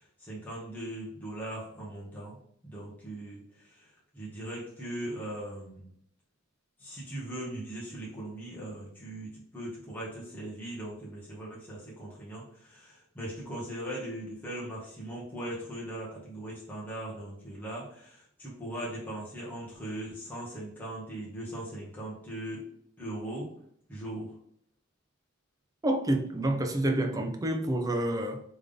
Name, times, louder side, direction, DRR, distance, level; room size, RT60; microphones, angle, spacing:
voice 1, 0.0-2.4 2.6-3.9 4.1-5.9 6.8-22.6 23.0-23.5 23.9-24.3, right 1 dB, 10° left, 1.3 m, -39 dB
voice 2, 25.8-28.4, right 1 dB, 20° right, 0.5 m, -28 dB
3.5 x 3.4 x 3.7 m
head